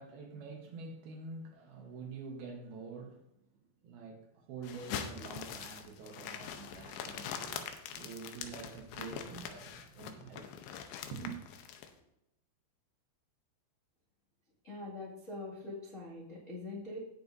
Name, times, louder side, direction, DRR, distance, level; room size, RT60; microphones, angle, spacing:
voice 1, 0.0-3.5 3.8-10.6 11.1-11.4, right 5 dB, 70° right, 2.5 m, -46 dB
sound 1, 4.6-11.9, left 8 dB, 80° left, 2.7 m, -43 dB
voice 2, 14.6-17.1, left 2 dB, 55° left, 0.8 m, -43 dB
18.5 x 6.7 x 2.6 m
omnidirectional pair, 5.3 m